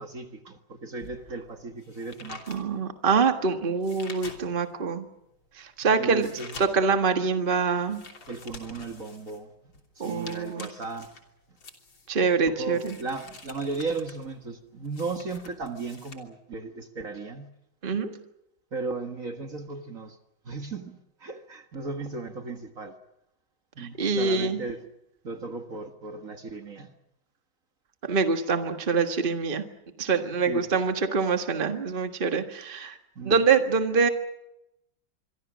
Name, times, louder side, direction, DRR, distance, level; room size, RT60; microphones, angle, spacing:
voice 1, 0.0-2.4 6.0-6.6 8.3-9.5 10.0-11.1 12.5-17.5 18.7-20.2 20.5-23.0 23.8-24.8 25.2-26.9 30.5-30.8 33.2-33.4, right 3 dB, 45° right, 1.9 m, -35 dB
sound 1, 1.0-4.8 5.3-16.1, left 3 dB, 75° left, 3.9 m, -47 dB
voice 2, 2.5-5.0 5.6-6.3 6.6-8.0 10.0-10.7 12.1-13.0 17.8-18.2 23.8-24.6 28.0-29.7 30.0-33.0 33.3-34.1, right 5 dB, 30° right, 1.7 m, -25 dB
26.0 x 24.5 x 6.3 m
omnidirectional pair, 2.1 m